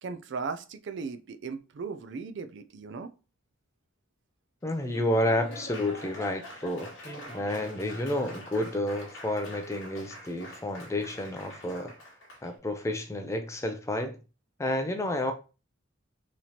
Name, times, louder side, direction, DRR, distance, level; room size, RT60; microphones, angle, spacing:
voice 1, 0.0-3.1, right 5 dB, 55° right, 0.4 m, -37 dB
Laughter / Applause, 4.6-12.5, left 1 dB, 55° left, 1.2 m, -45 dB
voice 2, 4.6-11.9 12.4-14.2 14.6-15.3, left 1 dB, 15° left, 0.4 m, -30 dB
4.1 x 3.0 x 2.8 m
head